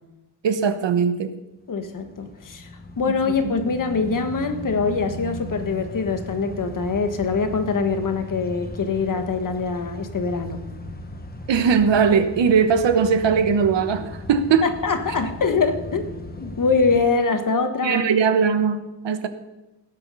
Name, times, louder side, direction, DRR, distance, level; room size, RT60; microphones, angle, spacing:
voice 1, 0.4-1.3 11.5-14.6 17.8-19.3, right 6 dB, 85° right, 9 dB, 1.2 m, -19 dB
voice 2, 1.7-2.7 3.0-10.7 14.6-16.0 16.4-18.1, left 4 dB, 45° left, 7 dB, 1.4 m, -23 dB
sound 1, 1.8-17.0, left 1 dB, 20° left, 1.1 m, -37 dB
17.5 x 8.3 x 5.5 m, 1.0 s
wide cardioid pair, 155°, 43 cm